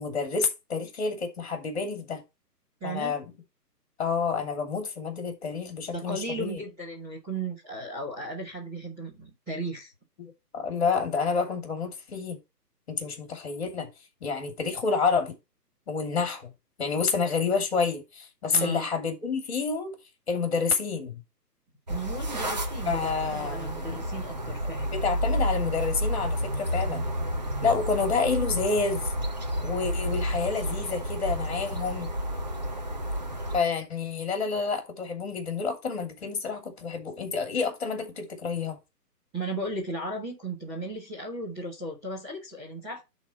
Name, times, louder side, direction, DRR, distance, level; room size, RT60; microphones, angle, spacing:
voice 1, 0.0-2.2 2.8-3.2 4.0-6.6 10.2-12.4 12.9-13.9 14.2-15.4 15.9-16.5 16.8-19.9 20.3-21.2 22.9-24.1 24.9-27.0 27.6-29.1 29.6-32.1 33.5-38.8, left 5 dB, 40° left, 2.8 m, -29 dB
voice 2, 2.8-3.1 5.9-9.9 18.5-18.8 21.9-25.0 39.3-43.0, right 2 dB, 5° right, 1.5 m, -35 dB
sound 1, 21.9-33.6, equal, 25° right, 0.8 m, -30 dB
10.5 x 4.2 x 4.3 m
hypercardioid pair, 170°, 49 cm